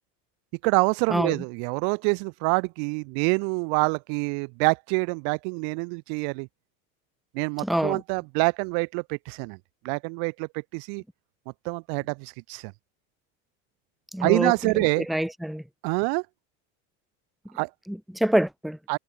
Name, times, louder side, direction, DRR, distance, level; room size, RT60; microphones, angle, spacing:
voice 1, 0.6-6.5 7.3-9.6 9.8-11.0 11.6-12.7 14.2-15.1 15.8-16.3 17.5-17.7 18.9-19.0, right 40 dB or more, 75° right, 2.3 m, -26 dB
voice 2, 7.6-8.0 14.1-15.6 17.9-18.8, right 1 dB, ahead, 1.4 m, -26 dB
supercardioid pair, 120°, 37 cm